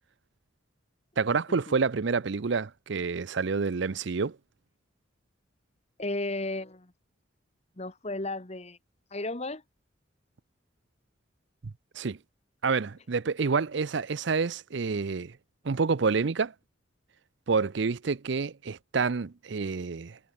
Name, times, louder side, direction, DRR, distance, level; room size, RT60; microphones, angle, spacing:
voice 1, 1.2-4.4 12.0-12.2 12.6-15.4 15.6-16.5 17.5-20.2, right 4 dB, 60° right, 0.5 m, -28 dB
voice 2, 6.0-6.9 7.8-8.8 9.1-9.6, left 2 dB, 30° left, 1.4 m, -34 dB
head